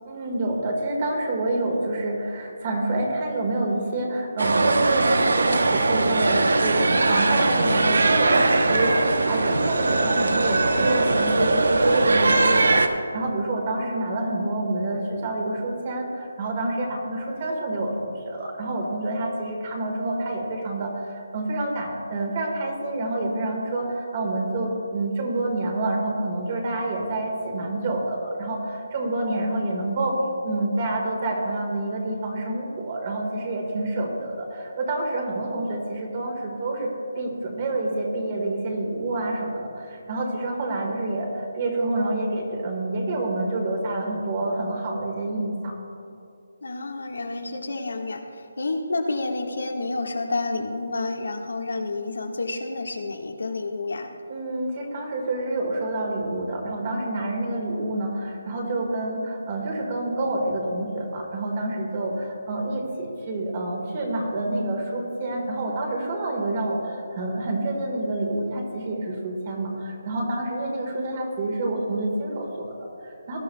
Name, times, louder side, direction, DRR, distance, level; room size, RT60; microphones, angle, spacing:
voice 1, 0.1-8.9 9.2-45.7 54.3-73.4, right 2 dB, 25° right, 1 dB, 1.6 m, -27 dB
sound 1, 4.4-12.9, right 2 dB, 70° right, 0.8 m, -20 dB
voice 2, 46.6-54.1, left 2 dB, 80° left, 2 dB, 1.6 m, -29 dB
19.0 x 12.0 x 2.3 m, 2.5 s
hypercardioid pair, 180°, 0 cm